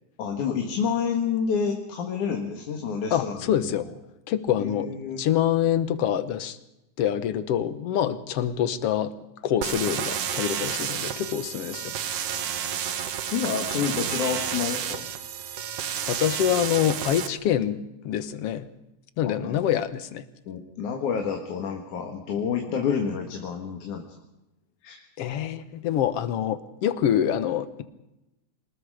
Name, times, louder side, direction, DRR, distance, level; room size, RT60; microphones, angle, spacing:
voice 1, 0.2-3.8 4.6-5.2 13.3-15.1 19.2-19.6 20.5-24.0 24.8-25.0, left 6 dB, 80° left, 2 dB, 3.3 m, -29 dB
voice 2, 3.1-3.8 4.3-4.9 5.2-6.6 7.0-9.1 9.4-11.9 16.1-17.8 18.0-18.7 19.2-20.2 25.2-27.8, left 10 dB, 65° left, 12 dB, 1.8 m, -25 dB
sound 1, 9.6-17.3, right 9 dB, 60° right, 2.0 m, -31 dB
26.5 x 19.5 x 5.0 m, 0.92 s
omnidirectional pair, 3.4 m